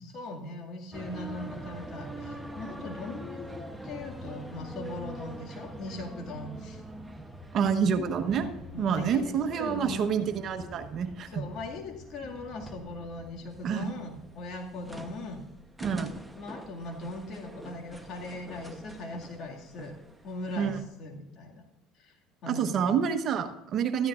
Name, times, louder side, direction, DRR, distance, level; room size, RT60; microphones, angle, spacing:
voice 1, 0.1-6.8 8.7-10.1 11.3-15.4 16.3-20.0 20.2-21.6 22.0-22.2 22.4-23.0, left 2 dB, 55° left, 1 dB, 2.1 m, -40 dB
sound 1, 0.9-20.8, right 1 dB, 5° right, 1.0 m, -44 dB
voice 2, 7.5-8.5 8.8-11.4 13.6-13.9 15.8-16.2 20.6-20.8 22.5-24.1, right 7 dB, 50° right, 9 dB, 1.0 m, -28 dB
16.0 x 13.5 x 2.5 m, 0.88 s
supercardioid pair, 95°, 0 cm